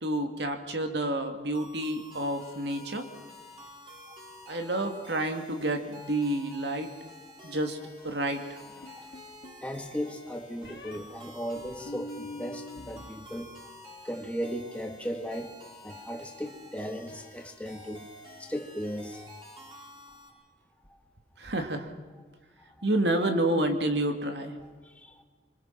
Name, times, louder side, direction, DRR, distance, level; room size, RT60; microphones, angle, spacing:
voice 1, 0.0-3.1 4.5-6.9 7.4-7.8 8.0-8.6 21.4-21.9 22.8-24.6, right 1 dB, 70° right, 2.6 m, -29 dB
sound 1, 1.5-20.3, left 1 dB, 25° right, 6.7 m, -49 dB
sound 2, 8.8-9.6 10.6-11.0 11.6-13.1 13.4-14.0, equal, 65° left, 2.5 m, -44 dB
voice 2, 8.8-9.1 9.5-13.7 14.0-15.6 15.8-18.1 18.4-19.2 20.9-21.0 22.7-22.9 24.6-25.2, equal, 5° left, 1.8 m, -37 dB
26.0 x 25.5 x 6.0 m
head